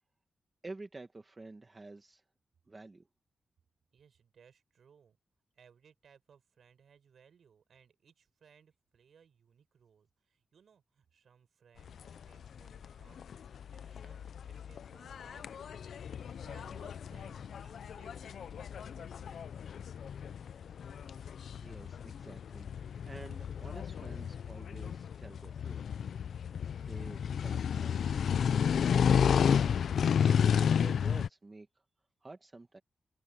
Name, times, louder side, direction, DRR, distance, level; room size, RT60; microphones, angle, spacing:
voice 1, 0.6-2.2 2.7-3.1 21.6-25.8 26.5-28.5 30.7-31.8 32.2-32.8, right 3 dB, 20° right, 1.3 m, -50 dB
voice 2, 3.9-5.2 5.6-15.8 16.4-19.4, right 7 dB, 65° right, 7.4 m, -63 dB
sound 1, 11.8-31.3, left 7 dB, 70° left, 0.4 m, -32 dB
open air
wide cardioid pair, 180°, 0 cm